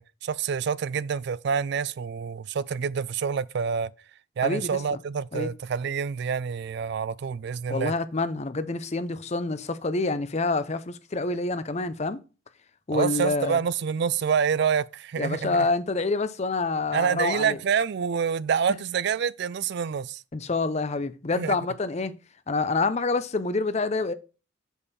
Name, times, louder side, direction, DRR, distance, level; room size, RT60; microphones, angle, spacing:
voice 1, 0.0-3.9 4.4-7.9 12.9-15.6 16.9-20.2 21.3-21.6, right 6 dB, 55° right, 0.3 m, -27 dB
voice 2, 4.4-5.0 5.3-5.5 7.7-12.2 12.9-13.6 15.2-17.6 20.3-22.1 22.5-24.1, left 3 dB, 30° left, 0.5 m, -27 dB
6.4 x 5.4 x 4.1 m
head